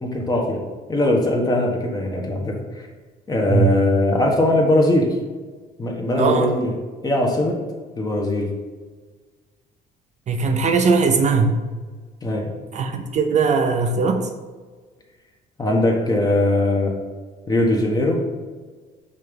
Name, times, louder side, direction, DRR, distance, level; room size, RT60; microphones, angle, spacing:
voice 1, 0.0-0.6 0.9-2.9 3.3-5.2 5.8-6.8 7.0-7.6 8.0-8.5 12.2-12.5 15.6-17.0 17.5-18.2, left 1 dB, 25° left, 0 dB, 1.1 m, -20 dB
voice 2, 3.5-3.8 6.2-6.5 10.3-11.6 12.7-14.3, right 4 dB, 45° right, 5 dB, 0.6 m, -19 dB
5.5 x 3.3 x 5.2 m, 1.4 s
cardioid pair, 110°, 17 cm